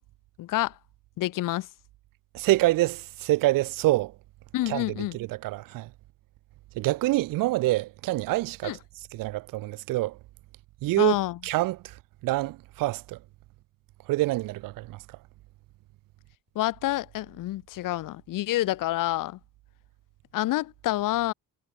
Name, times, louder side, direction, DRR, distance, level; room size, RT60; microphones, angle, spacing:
voice 1, 0.4-0.7 1.2-1.7 4.5-5.2 8.6-8.8 11.0-11.4 16.5-19.4 20.3-21.3, left 15 dB, 75° left, 2.8 m, -28 dB
voice 2, 2.3-4.1 4.7-4.8 5.1-5.9 6.8-8.8 9.1-10.2 10.8-11.2 11.4-11.9 12.2-13.2 14.1-15.0, right 18 dB, 85° right, 2.7 m, -26 dB
cardioid pair, 105°, 32 cm